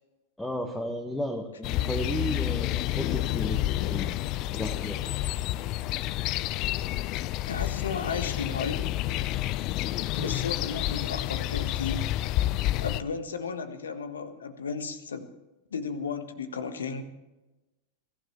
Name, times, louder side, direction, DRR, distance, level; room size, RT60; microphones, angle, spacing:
voice 1, 0.4-4.1 4.5-5.0, equal, 5° left, 3 dB, 1.7 m, -33 dB
Subdued birds in wooded suburban village near Moscow, 1.6-13.0, left 15 dB, 40° left, 0.5 m, -29 dB
voice 2, 7.5-8.9 10.1-12.1 12.8-15.3 15.7-17.0, left 5 dB, 70° left, 9 dB, 1.6 m, -34 dB
23.5 x 15.5 x 3.2 m, 1.0 s
figure-of-eight pair, 90°, 0 cm